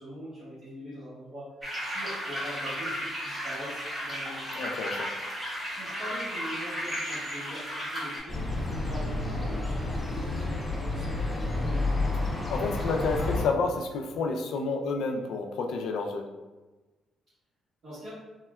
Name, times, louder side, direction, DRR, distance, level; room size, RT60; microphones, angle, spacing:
voice 1, 0.0-1.5 1.8-4.6 5.7-10.6 10.9-11.9 17.8-18.1, equal, 60° right, -13 dB, 1.1 m, -42 dB
sound 1, 1.6-8.2, equal, 20° right, 1.1 m, -34 dB
voice 2, 4.5-5.1 12.3-16.3, left 4 dB, 80° left, 4 dB, 0.3 m, -30 dB
sound 2, 8.3-13.4, left 2 dB, 20° left, 0.5 m, -30 dB
3.5 x 2.1 x 2.2 m, 1.2 s
cardioid pair, 105°, 0 cm